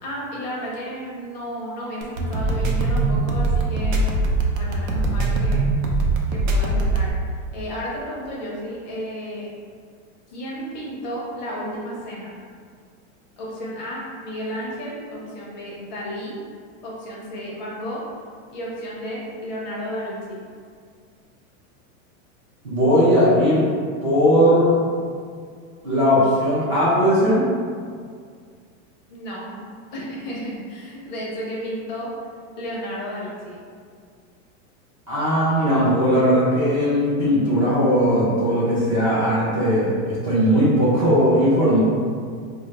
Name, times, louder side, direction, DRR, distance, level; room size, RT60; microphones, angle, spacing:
voice 1, 0.0-4.0 4.5-5.7 6.3-7.1 7.5-9.5 10.3-12.3 13.4-16.4 16.8-18.0 18.5-20.4 29.1-29.6 29.9-32.1 32.6-33.6, equal, 35° left, -5 dB, 0.4 m, -32 dB
sound 1, 2.0-7.1, right 2 dB, 75° right, 0.6 m, -21 dB
voice 2, 22.6-23.7 24.0-24.7 25.8-27.4 35.1-41.8, equal, 25° right, -10 dB, 0.3 m, -18 dB
2.3 x 2.2 x 3.9 m, 2.1 s
supercardioid pair, 175°, 40 cm